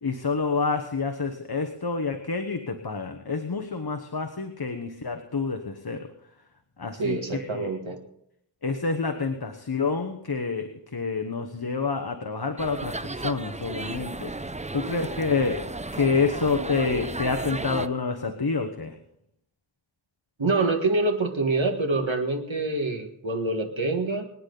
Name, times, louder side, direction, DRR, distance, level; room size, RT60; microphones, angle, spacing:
voice 1, 0.0-6.1 6.8-7.7 8.6-14.3 14.7-15.6 15.9-18.9, left 4 dB, 55° left, 6 dB, 1.2 m, -28 dB
voice 2, 7.0-8.0 20.4-24.3, right 3 dB, 90° right, 4 dB, 1.8 m, -26 dB
sound 1, 12.6-17.9, right 2 dB, 15° right, 0.6 m, -34 dB
25.0 x 10.0 x 4.0 m, 0.76 s
wide cardioid pair, 45°, 45 cm